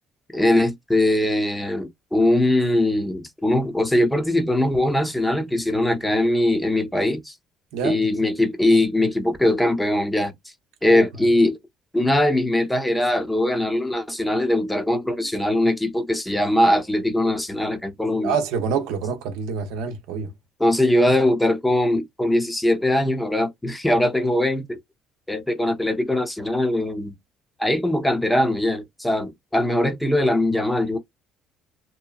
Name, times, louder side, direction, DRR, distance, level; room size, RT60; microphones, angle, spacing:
voice 1, 0.3-7.3 7.8-10.3 10.8-11.6 11.9-18.4 20.6-24.8 25.3-27.2 27.6-31.0, left 1 dB, 10° left, 0.7 m, -21 dB
voice 2, 18.2-20.3, right 6 dB, 85° right, 0.6 m, -26 dB
2.9 x 2.1 x 2.3 m
supercardioid pair, 85°, 0 cm